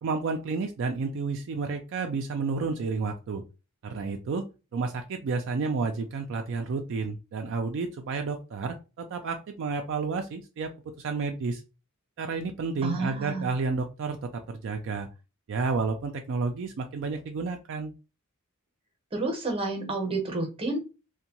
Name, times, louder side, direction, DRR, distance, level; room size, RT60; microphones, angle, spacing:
voice 1, 0.0-3.4 3.8-4.4 4.7-10.7 11.0-11.6 12.2-15.1 15.5-17.9, right 4 dB, 60° right, 5 dB, 0.3 m, -31 dB
voice 2, 12.8-13.4 19.1-20.8, right 2 dB, 25° right, 3 dB, 0.7 m, -30 dB
2.6 x 2.1 x 2.8 m, 0.30 s
head